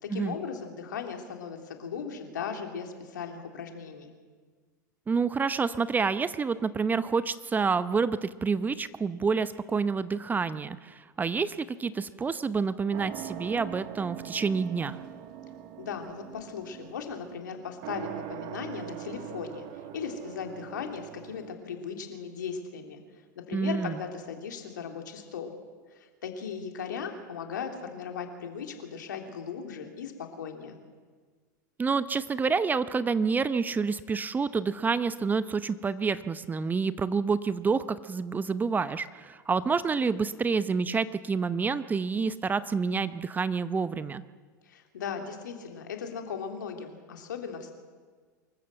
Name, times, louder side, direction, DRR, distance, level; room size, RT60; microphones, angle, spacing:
voice 1, 0.0-4.1 15.8-19.6 19.9-23.0 23.3-25.5 25.9-30.8 44.6-47.7, left 6 dB, 75° left, 4 dB, 3.1 m, -37 dB
voice 2, 5.1-15.0 23.5-23.9 31.8-44.2, right 5 dB, 15° right, 14 dB, 0.7 m, -28 dB
sound 1, 12.9-21.5, right 11 dB, 50° right, 2.0 m, -42 dB
24.5 x 14.0 x 7.9 m, 1.5 s
hypercardioid pair, 90°, 10 cm